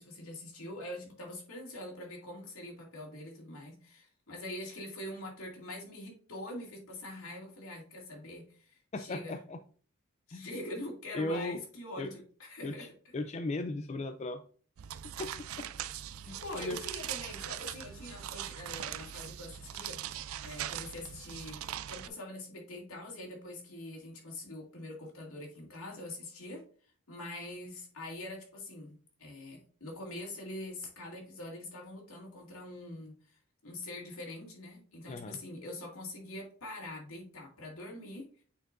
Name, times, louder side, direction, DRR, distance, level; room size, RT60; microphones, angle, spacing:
voice 1, 0.0-9.4 10.3-12.9 16.4-26.6 27.1-38.4, left 1 dB, 80° left, 0 dB, 2.3 m, -44 dB
voice 2, 8.9-9.6 10.3-10.5 11.1-11.6 12.0-12.1 12.6-12.9 13.1-14.4 15.2-15.3 15.6-15.7 16.2-16.8 35.1-35.4, left 2 dB, 30° left, 8 dB, 0.4 m, -37 dB
sound 1, 14.8-22.1, right 11 dB, 80° right, 0.4 m, -41 dB
8.8 x 4.5 x 2.5 m, 0.43 s
head